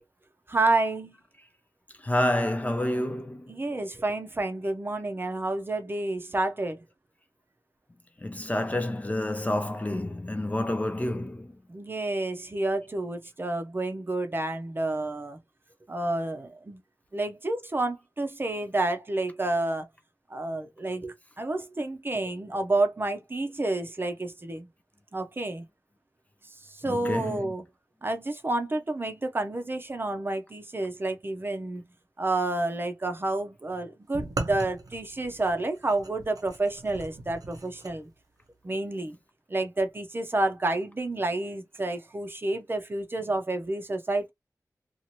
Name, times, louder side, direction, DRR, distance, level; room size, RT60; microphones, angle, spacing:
voice 1, 0.5-1.1 3.5-6.8 11.7-15.4 15.9-16.8 17.1-19.9 20.3-24.7 25.1-25.6 26.6-27.7 28.0-31.8 32.2-38.1 38.6-39.2 39.5-44.3, right 2 dB, 35° right, 0.6 m, -29 dB
voice 2, 2.0-3.5 8.2-11.5 26.9-27.4, left 1 dB, 20° left, 0.4 m, -28 dB
sound 1, 34.1-37.9, right 2 dB, 65° right, 0.8 m, -38 dB
2.9 x 2.5 x 2.8 m
wide cardioid pair, 90°, 7 cm